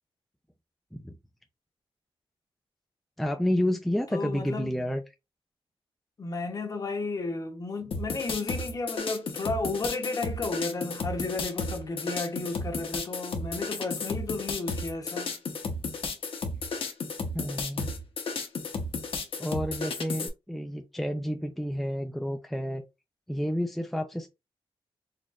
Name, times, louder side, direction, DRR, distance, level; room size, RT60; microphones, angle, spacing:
voice 1, 3.2-5.0 17.3-17.9 19.4-22.8 23.3-24.3, equal, ahead, 0.4 m, -30 dB
voice 2, 4.1-4.7 6.2-15.4, left 3 dB, 35° left, 0.8 m, -33 dB
sound 1, 7.9-20.3, left 3 dB, 65° left, 0.9 m, -33 dB
4.2 x 2.9 x 2.4 m
wide cardioid pair, 155°, 10 cm